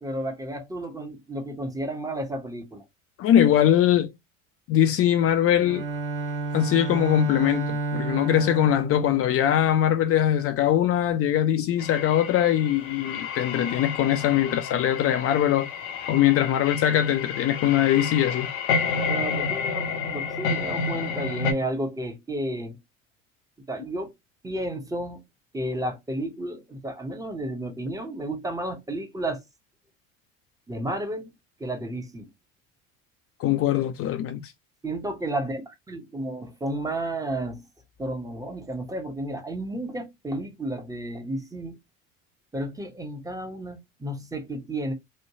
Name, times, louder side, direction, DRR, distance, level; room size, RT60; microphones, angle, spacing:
voice 1, 0.0-2.8 19.1-22.8 23.7-24.1 24.4-25.2 25.5-29.4 30.7-31.3 31.6-32.3 34.8-37.7 38.0-41.8 42.5-44.9, right 1 dB, 10° right, 0.7 m, -32 dB
voice 2, 3.2-4.1 4.7-5.8 6.5-15.7 16.1-18.5 33.4-34.4, left 11 dB, 35° left, 0.4 m, -22 dB
Bowed string instrument, 5.5-10.2, right 3 dB, 85° right, 0.9 m, -31 dB
sound 1, 11.8-21.5, left 5 dB, 70° left, 0.7 m, -30 dB
3.1 x 2.2 x 2.6 m
hypercardioid pair, 75°, 40 cm